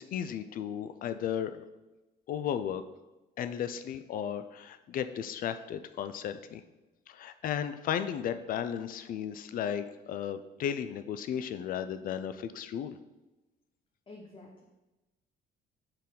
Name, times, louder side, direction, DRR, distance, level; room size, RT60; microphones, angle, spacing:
voice 1, 0.0-1.6 2.3-2.8 3.4-6.6 7.1-13.0, left 9 dB, 55° left, 10 dB, 0.4 m, -35 dB
voice 2, 14.1-14.6, left 2 dB, 30° left, 0 dB, 0.9 m, -49 dB
6.5 x 4.0 x 5.4 m, 1.1 s
cardioid pair, 110°, 17 cm